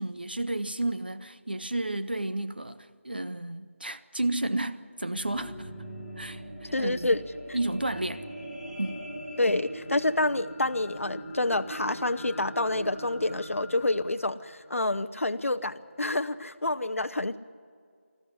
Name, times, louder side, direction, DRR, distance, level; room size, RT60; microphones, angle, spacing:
voice 1, 0.0-5.7 6.2-7.1 7.5-8.3 8.8-9.1, right 1 dB, 45° right, 0.6 m, -32 dB
sound 1, 4.9-15.3 15.9-16.0, right 1 dB, 10° right, 5.9 m, -41 dB
voice 2, 6.7-7.2 9.4-17.4, left 2 dB, 90° left, 0.8 m, -28 dB
20.5 x 14.0 x 9.9 m
figure-of-eight pair, 180°, 7 cm